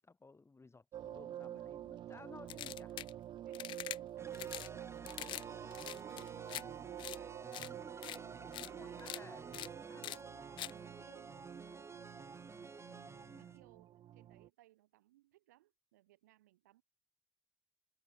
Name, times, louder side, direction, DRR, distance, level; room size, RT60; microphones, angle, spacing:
voice 1, 0.0-3.0 8.7-10.2 12.8-13.5, left 3 dB, 30° left, 5.2 m, -58 dB
sound 1, 0.9-14.5, right 11 dB, 60° right, 0.4 m, -48 dB
sound 2, 2.5-3.1 3.5-4.0 4.3-4.7 5.1-5.4 5.7-6.6 7.0-7.2 7.5-7.7 8.0-8.2 8.5-8.7 9.0-9.2 9.5-9.7 10.0-10.2 10.6-10.7, left 14 dB, 65° left, 0.4 m, -44 dB
voice 2, 3.4-7.9 8.4-9.8 10.3-11.3 12.0-12.3 13.3-16.8, right 16 dB, 85° right, 5.1 m, -66 dB
sound 3, 4.2-13.6, right 3 dB, 30° right, 5.4 m, -52 dB
hypercardioid pair, 45°, 9 cm